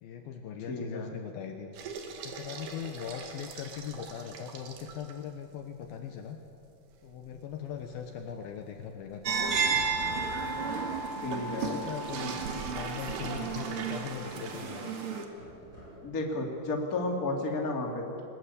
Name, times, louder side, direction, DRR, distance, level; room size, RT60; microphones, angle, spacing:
voice 1, 0.0-1.7 2.2-6.4 7.0-10.2 11.6-14.9, left 8 dB, 70° left, 5 dB, 2.7 m, -40 dB
voice 2, 0.7-1.1 11.2-11.8 16.0-18.2, left 2 dB, 25° left, 1 dB, 2.4 m, -32 dB
sound 1, 1.7-5.3 5.8-5.9 6.3-6.4 6.9-14.6, right 4 dB, 70° right, 3.8 m, -42 dB
sound 2, 9.3-15.3, right 5 dB, 50° right, 1.8 m, -33 dB
sound 3, 9.5-11.6 13.0-13.8 15.4-16.1, right 1 dB, 25° right, 8.6 m, -46 dB
23.0 x 20.0 x 8.5 m, 2.6 s
omnidirectional pair, 5.0 m